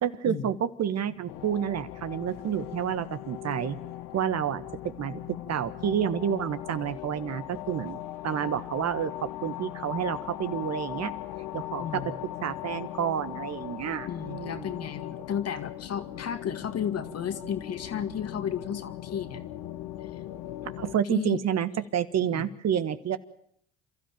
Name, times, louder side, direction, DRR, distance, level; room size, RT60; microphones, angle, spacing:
voice 1, 0.0-3.8 4.1-4.6 5.0-5.2 5.5-11.1 11.5-12.0 12.4-14.8 20.8-23.2, right 9 dB, 50° right, 12 dB, 1.4 m, -29 dB
sound 1, 1.3-20.9, left 13 dB, 70° left, 1.4 m, -39 dB
voice 2, 11.8-12.2 14.1-19.4 21.1-21.4 22.2-22.5, left 8 dB, 45° left, 9 dB, 2.1 m, -33 dB
28.5 x 13.0 x 9.0 m, 0.67 s
hypercardioid pair, 65°, 34 cm